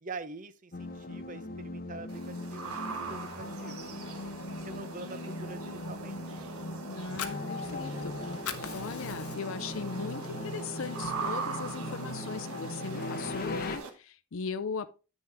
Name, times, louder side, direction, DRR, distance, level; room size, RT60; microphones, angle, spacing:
voice 1, 0.0-3.9 4.6-6.5, right 3 dB, 35° right, 0.6 m, -45 dB
sound 1, 0.7-13.8, left 2 dB, 40° left, 0.9 m, -39 dB
sound 2, 2.1-13.9, right 4 dB, 75° right, 1.3 m, -41 dB
voice 2, 6.8-14.9, left 5 dB, 60° left, 0.5 m, -39 dB
Fire, 6.9-8.1 8.3-9.7 10.1-10.2 10.6-11.6, left 7 dB, 80° left, 0.9 m, -41 dB
9.3 x 6.4 x 3.5 m
head